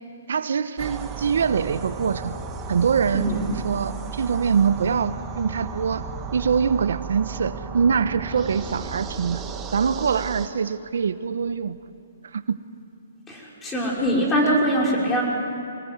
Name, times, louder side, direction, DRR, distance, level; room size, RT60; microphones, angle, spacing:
voice 1, 0.3-2.3 2.7-9.4 9.7-11.8 12.3-12.6 14.4-14.6, right 6 dB, 75° right, 13 dB, 0.9 m, -24 dB
sound 1, 0.8-10.5, right 6 dB, 20° right, 1.6 m, -35 dB
voice 2, 13.3-15.2, equal, 15° left, -3 dB, 5.6 m, -22 dB
24.5 x 19.5 x 9.5 m, 2.6 s
hypercardioid pair, 145°, 0 cm